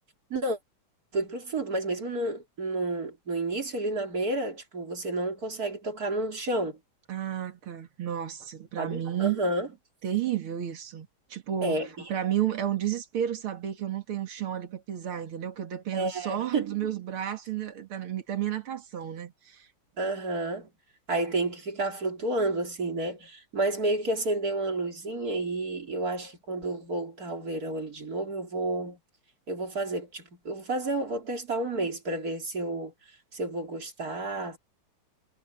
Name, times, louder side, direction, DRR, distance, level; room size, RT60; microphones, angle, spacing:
voice 1, 1.1-6.8 8.8-9.7 11.6-12.1 15.9-16.8 20.0-20.7 21.1-29.0 29.5-32.9 33.3-34.6, right 2 dB, 45° right, 3.9 m, -30 dB
voice 2, 7.1-9.4 10.0-11.8 12.1-19.7, right 10 dB, 80° right, 2.9 m, -32 dB
omnidirectional pair, 2.3 m